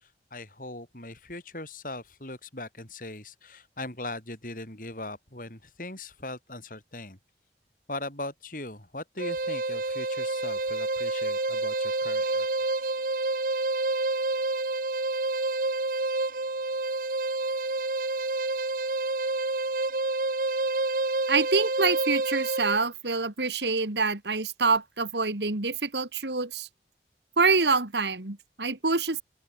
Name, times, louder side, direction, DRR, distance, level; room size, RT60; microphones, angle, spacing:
voice 1, 0.0-7.2 7.9-12.5, left 2 dB, 50° left, 6.8 m, -40 dB
sound 1, 9.2-22.8, right 2 dB, 50° right, 1.5 m, -28 dB
voice 2, 21.3-26.7 27.4-29.2, right 4 dB, 80° right, 2.4 m, -26 dB
open air
head